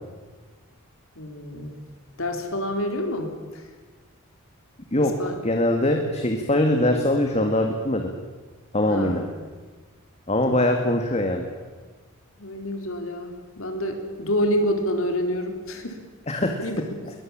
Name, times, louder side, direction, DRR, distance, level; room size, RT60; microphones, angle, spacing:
voice 1, 1.2-1.8 2.2-3.7 5.0-5.4 8.9-9.3 10.5-10.7 12.4-16.0 16.6-17.0, equal, 65° left, 5 dB, 4.0 m, -28 dB
voice 2, 5.4-8.1 8.7-9.2 10.3-11.4 16.3-16.5, left 1 dB, 30° left, 3 dB, 2.1 m, -22 dB
22.5 x 20.5 x 8.8 m, 1.4 s
head